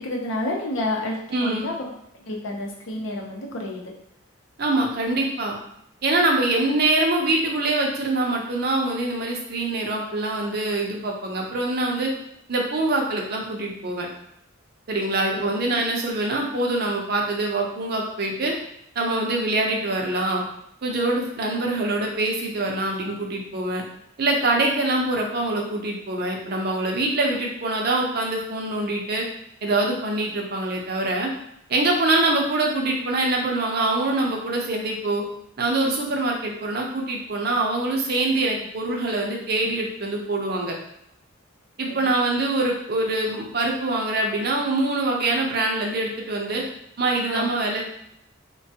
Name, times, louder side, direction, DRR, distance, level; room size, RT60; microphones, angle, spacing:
voice 1, 0.0-1.8 2.2-3.9 41.9-42.0 47.3-47.5, left 1 dB, 70° left, -1 dB, 0.6 m, -29 dB
voice 2, 1.3-1.7 4.6-5.6 6.0-12.1 12.5-14.1 14.9-18.5 19.0-20.4 20.8-23.8 24.2-29.2 29.6-31.3 31.7-35.2 35.6-40.8 41.8-46.6 47.0-47.8, right 2 dB, 50° right, 0 dB, 0.5 m, -24 dB
3.2 x 2.2 x 2.7 m, 0.75 s
head